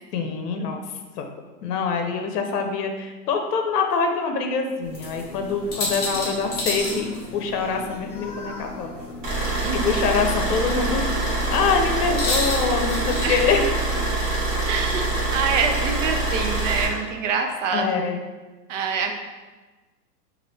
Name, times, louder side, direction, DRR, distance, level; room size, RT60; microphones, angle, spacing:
voice 1, 0.1-0.8 1.2-1.3 1.6-8.9 9.7-11.0 11.4-13.8 17.7-18.2, left 5 dB, 70° left, 4 dB, 0.7 m, -25 dB
sound 1, 4.8-14.3, left 2 dB, 20° left, 0.7 m, -32 dB
sound 2, 9.2-16.9, right 2 dB, 25° right, 1.0 m, -25 dB
voice 2, 9.6-10.1 13.2-13.4 14.7-18.0 18.7-19.1, right 5 dB, 50° right, 5 dB, 0.6 m, -26 dB
3.2 x 2.6 x 4.0 m, 1.2 s
hypercardioid pair, 140°, 49 cm